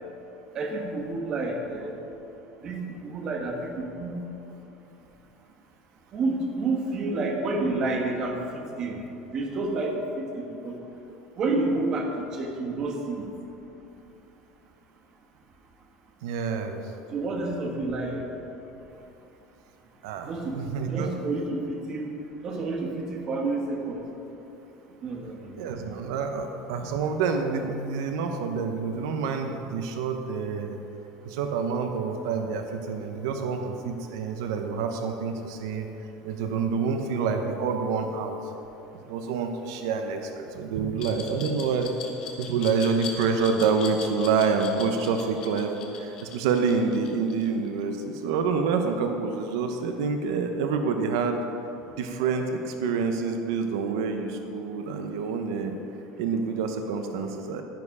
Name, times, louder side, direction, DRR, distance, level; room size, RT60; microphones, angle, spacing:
voice 1, 0.5-1.9 2.6-4.2 6.1-9.0 9.3-10.8 11.4-13.3 17.1-18.2 20.3-20.5 20.9-22.1 22.4-24.0 25.0-25.9, right 2 dB, 25° right, 1 dB, 1.3 m, -29 dB
voice 2, 16.2-16.8 20.0-21.2 25.5-30.8 31.2-35.9 36.2-38.4 39.1-41.9 42.4-51.4 51.9-55.7 56.2-57.6, right 5 dB, 75° right, 5 dB, 0.9 m, -27 dB
Glass, 41.0-47.8, left 6 dB, 30° left, 1.3 m, -39 dB
11.0 x 10.5 x 4.8 m, 2.9 s
cardioid pair, 180°, 2 cm